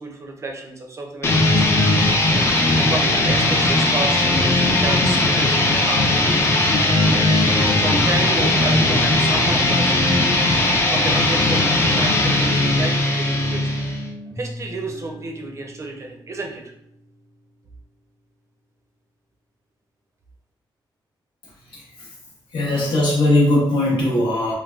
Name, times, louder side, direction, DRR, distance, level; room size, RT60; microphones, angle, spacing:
voice 1, 0.0-1.9 2.7-6.1 6.9-10.1 10.9-13.8 14.4-16.7, right 2 dB, 35° right, 2 dB, 0.5 m, -31 dB
sound 1, 1.2-14.1, left 2 dB, 30° left, 0.4 m, -18 dB
sound 2, 1.7-17.5, equal, 10° left, 0.7 m, -37 dB
voice 2, 21.7-22.1 22.5-24.5, left 1 dB, 70° left, -5 dB, 0.7 m, -19 dB
3.2 x 2.1 x 2.3 m, 0.76 s
wide cardioid pair, 155°, 9 cm